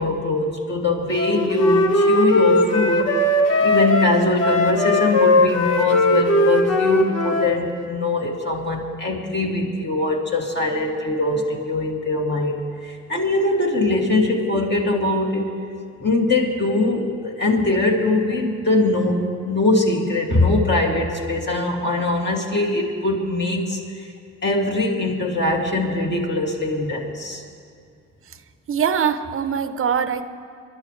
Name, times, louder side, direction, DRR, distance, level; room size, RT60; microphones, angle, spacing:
voice 1, 0.0-3.1 3.6-15.5 16.0-23.8 24.4-27.4, left 2 dB, 35° left, -1 dB, 2.5 m, -22 dB
Wind instrument woodwind instrument, 1.2-7.5, left 1 dB, 55° left, 1.5 m, -18 dB
voice 2, 28.7-30.3, right 7 dB, 45° right, 11 dB, 0.8 m, -22 dB
26.0 x 11.5 x 3.3 m, 2.3 s
cardioid pair, 90°, 30 cm